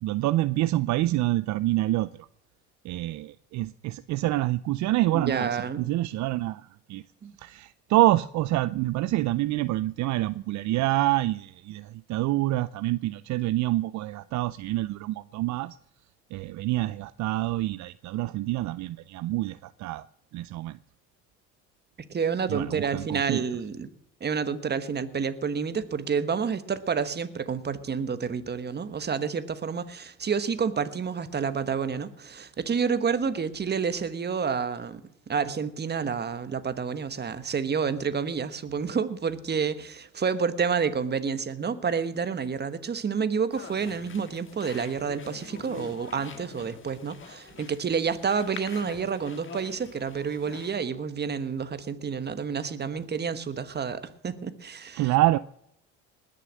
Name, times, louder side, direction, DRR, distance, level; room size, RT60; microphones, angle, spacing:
voice 1, 0.0-2.3 2.8-7.0 7.4-15.8 16.3-20.1 20.3-20.8 22.5-23.4 54.9-55.4, right 16 dB, 60° right, 0.5 m, -27 dB
voice 2, 5.1-5.8 7.2-7.3 22.1-23.9 24.2-55.1, right 6 dB, 30° right, 1.3 m, -29 dB
sound 1, 43.5-50.8, left 6 dB, 40° left, 1.5 m, -45 dB
20.0 x 6.8 x 7.5 m
supercardioid pair, 85°, 32 cm